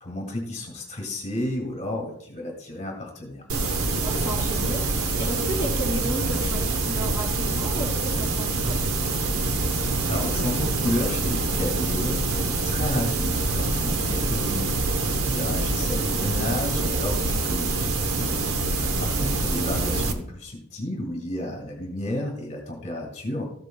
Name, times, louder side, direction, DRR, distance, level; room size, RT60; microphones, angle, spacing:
voice 1, 0.0-3.5 9.8-14.8 15.2-17.9 18.4-23.5, left 1 dB, 30° left, 1 dB, 1.9 m, -32 dB
sound 1, 3.5-20.1, right 3 dB, 70° right, 1.0 m, -25 dB
voice 2, 4.0-8.8, right 1 dB, 10° right, -1 dB, 2.4 m, -33 dB
14.0 x 8.1 x 2.3 m, 0.69 s
head